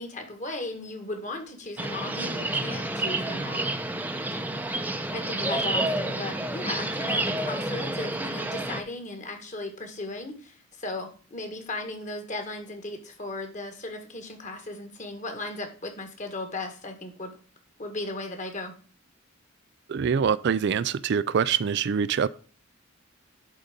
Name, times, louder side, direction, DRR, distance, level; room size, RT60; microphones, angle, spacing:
voice 1, 0.0-3.7 5.1-17.4 17.8-18.7, left 2 dB, 35° left, 1.8 m, -36 dB
sound 1, 1.8-8.8, right 1 dB, 10° right, 0.7 m, -29 dB
voice 2, 19.9-22.3, right 7 dB, 55° right, 0.4 m, -24 dB
11.0 x 4.0 x 5.1 m
head